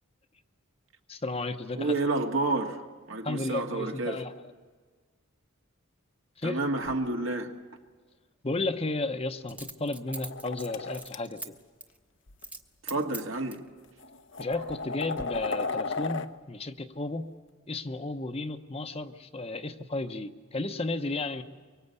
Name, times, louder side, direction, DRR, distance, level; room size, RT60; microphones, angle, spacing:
voice 1, 1.1-1.9 3.2-4.3 6.4-6.6 8.4-11.5 14.4-17.3 17.7-21.4, left 2 dB, 30° left, 0.8 m, -33 dB
voice 2, 1.8-4.2 6.4-7.5 12.8-13.6, right 2 dB, 65° right, 1.8 m, -30 dB
Coin (dropping), 6.8-7.0 9.5-11.5 11.8-12.0 12.4-12.6 12.9-13.7 14.3-14.9 15.2-15.3, right 2 dB, 5° right, 1.0 m, -42 dB
sound 1, 10.1-11.2 12.3-12.4 13.3-13.4 14.0-16.3, left 4 dB, 60° left, 0.8 m, -34 dB
24.0 x 24.0 x 8.3 m
head